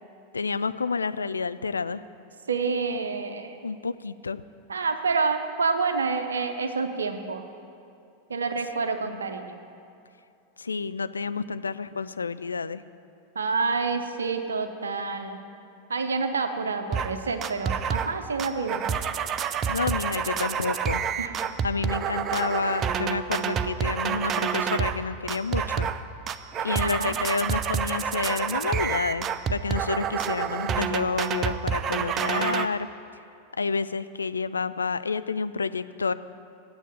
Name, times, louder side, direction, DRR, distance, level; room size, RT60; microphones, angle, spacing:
voice 1, 0.3-2.0 3.6-4.4 9.0-9.2 10.6-12.8 19.7-21.0 21.6-25.9 26.6-32.9 33.6-36.1, left 4 dB, 75° left, 14 dB, 0.3 m, -29 dB
voice 2, 2.5-3.6 4.7-7.4 8.3-9.6 13.4-15.4 15.9-18.8 21.2-21.3 22.8-22.9 26.8-27.1, right 4 dB, 70° right, 7 dB, 0.7 m, -28 dB
sound 1, 16.9-17.1 17.4-18.1 18.4-25.0 25.3-26.0 26.3-32.7, right 7 dB, 30° right, 0.4 m, -28 dB
9.1 x 7.8 x 9.1 m, 2.7 s
figure-of-eight pair, 90°, 0 cm